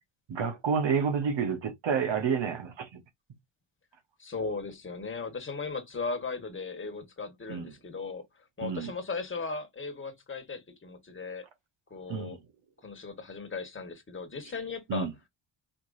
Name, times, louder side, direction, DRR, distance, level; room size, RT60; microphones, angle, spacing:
voice 1, 0.3-3.0 7.5-7.7 8.6-8.9 12.1-12.4 14.9-15.1, right 6 dB, 60° right, 1.4 m, -29 dB
voice 2, 4.2-11.4 11.9-12.4 12.8-15.1, left 4 dB, 25° left, 1.6 m, -37 dB
5.0 x 3.2 x 2.7 m
cardioid pair, 85°, 49 cm